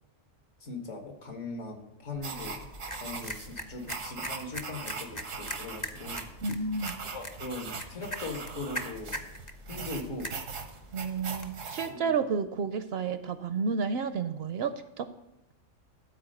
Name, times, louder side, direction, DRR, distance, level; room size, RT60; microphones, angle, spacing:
voice 1, 0.6-2.7 3.0-6.3 7.1-9.3 9.7-10.3 11.9-12.3, left 2 dB, 70° left, 4 dB, 1.7 m, -40 dB
sound 1, 2.1-11.7, equal, 20° left, 0.5 m, -43 dB
sound 2, 2.2-11.9, right 4 dB, 90° right, 1.4 m, -41 dB
voice 2, 6.4-7.0 10.9-15.1, right 5 dB, 65° right, 11 dB, 0.7 m, -31 dB
12.5 x 4.3 x 6.5 m, 0.89 s
omnidirectional pair, 1.3 m